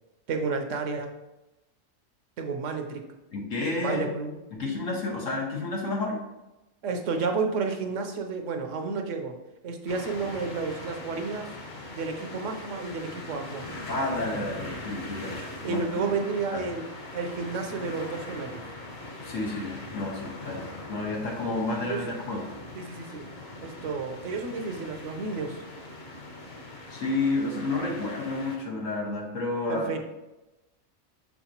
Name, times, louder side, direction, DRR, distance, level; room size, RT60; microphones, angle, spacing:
voice 1, 0.3-1.1 2.4-3.0 3.8-4.4 6.8-9.3 9.6-11.5 11.9-13.6 15.6-16.9 17.1-18.6 21.8-22.0 22.8-23.2 23.6-25.6 29.7-30.0, right 4 dB, 75° right, 4 dB, 1.1 m, -31 dB
voice 2, 3.3-4.1 4.5-6.2 13.9-16.1 16.5-16.6 19.2-22.5 26.9-30.0, left 2 dB, 85° left, -1 dB, 1.7 m, -30 dB
sound 1, 9.9-28.6, left 2 dB, 55° left, 1.5 m, -41 dB
6.2 x 5.7 x 2.9 m, 1.0 s
omnidirectional pair, 1.3 m